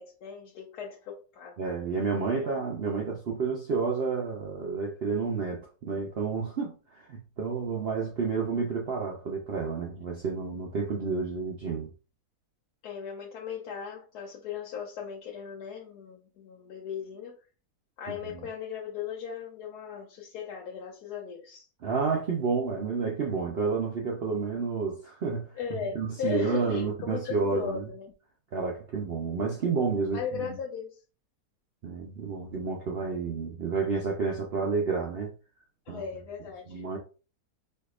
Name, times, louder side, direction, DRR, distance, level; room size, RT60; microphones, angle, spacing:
voice 1, 0.0-1.6 2.4-2.5 12.8-17.3 18.0-21.7 25.6-28.1 30.1-31.0 35.9-36.8, left 7 dB, 80° left, 1.2 m, -37 dB
voice 2, 1.6-11.9 18.1-18.4 21.8-25.5 25.9-27.9 28.5-30.6 31.8-35.3 35.9-36.0 36.7-37.0, right 4 dB, 60° right, 0.6 m, -30 dB
4.4 x 2.7 x 2.4 m
omnidirectional pair, 1.7 m